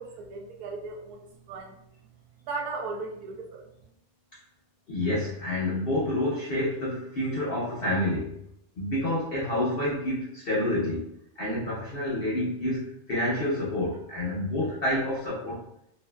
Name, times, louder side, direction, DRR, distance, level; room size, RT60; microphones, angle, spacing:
voice 1, 0.0-1.8 2.5-3.7, right 3 dB, 80° right, 1 dB, 1.1 m, -37 dB
voice 2, 4.9-8.3 8.8-15.6, left 1 dB, 60° left, -6 dB, 0.6 m, -28 dB
2.8 x 2.6 x 2.2 m, 0.76 s
omnidirectional pair, 1.6 m